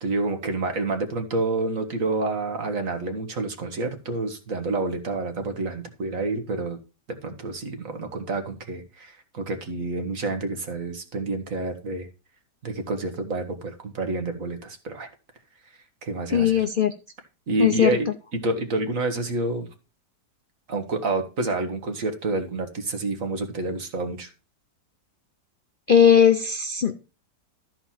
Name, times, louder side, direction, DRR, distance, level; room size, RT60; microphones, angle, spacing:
voice 1, 0.0-6.8 7.2-12.1 12.6-15.1 16.0-16.6 17.5-19.7 20.7-24.3, right 2 dB, 50° right, 6 dB, 1.8 m, -28 dB
voice 2, 16.3-16.9 17.6-18.0 25.9-26.9, left 8 dB, 55° left, 7 dB, 0.6 m, -18 dB
13.0 x 4.7 x 5.7 m, 0.32 s
omnidirectional pair, 1.8 m